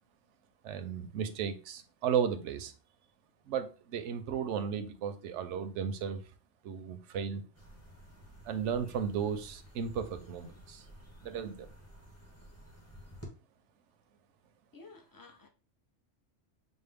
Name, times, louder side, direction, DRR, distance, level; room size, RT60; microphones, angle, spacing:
voice 1, 0.6-2.7 3.5-6.2 6.6-7.4 8.4-10.8 11.2-11.7, right 7 dB, 80° right, 0.9 m, -34 dB
sound 1, 7.5-13.3, equal, 15° left, 0.8 m, -53 dB
voice 2, 14.7-15.5, left 3 dB, 35° left, 0.3 m, -53 dB
5.3 x 2.0 x 3.4 m
omnidirectional pair, 1.2 m